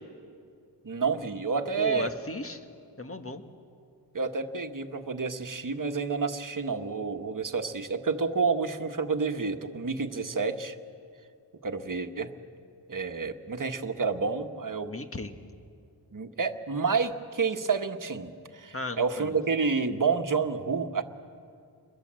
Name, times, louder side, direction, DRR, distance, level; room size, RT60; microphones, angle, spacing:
voice 1, 0.8-2.1 4.1-10.7 11.6-12.3 12.9-14.9 16.1-21.0, right 5 dB, 45° right, 7 dB, 1.5 m, -29 dB
voice 2, 1.8-2.7 3.0-3.4 14.9-15.3 18.7-19.4, left 2 dB, 30° left, 7 dB, 1.8 m, -35 dB
28.5 x 21.5 x 7.7 m, 2.4 s
cardioid pair, 65°, 44 cm